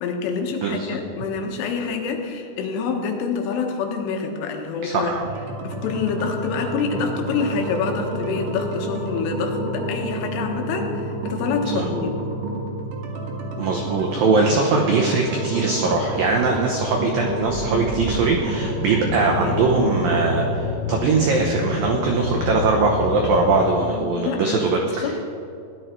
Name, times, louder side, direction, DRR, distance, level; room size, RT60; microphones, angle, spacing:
voice 1, 0.0-5.1 5.6-12.1 23.9-25.2, left 5 dB, 90° left, 3 dB, 3.9 m, -27 dB
voice 2, 0.6-1.0 4.8-5.2 11.7-11.9 13.6-25.1, right 3 dB, 90° right, 0 dB, 1.9 m, -21 dB
sound 1, 5.2-20.6, right 1 dB, 55° right, 2.7 m, -29 dB
sound 2, 15.6-20.4 21.1-21.3 21.6-21.8 22.3-22.4, right 2 dB, 35° right, 4.2 m, -37 dB
sound 3, 18.5-23.6, left 4 dB, 15° right, 2.6 m, -28 dB
17.0 x 11.5 x 4.5 m, 2.6 s
omnidirectional pair, 5.5 m